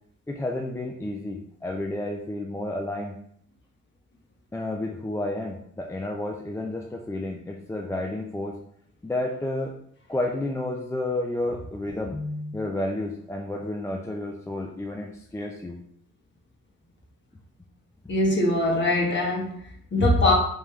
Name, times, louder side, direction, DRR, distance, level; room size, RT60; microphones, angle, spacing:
voice 1, 0.3-3.2 4.5-8.6 9.0-9.7 10.1-15.8, left 1 dB, 10° left, 1 dB, 0.4 m, -31 dB
voice 2, 18.1-20.3, left 2 dB, 40° left, -2 dB, 1.4 m, -22 dB
3.5 x 3.0 x 3.3 m, 0.68 s
cardioid pair, 90°, 30 cm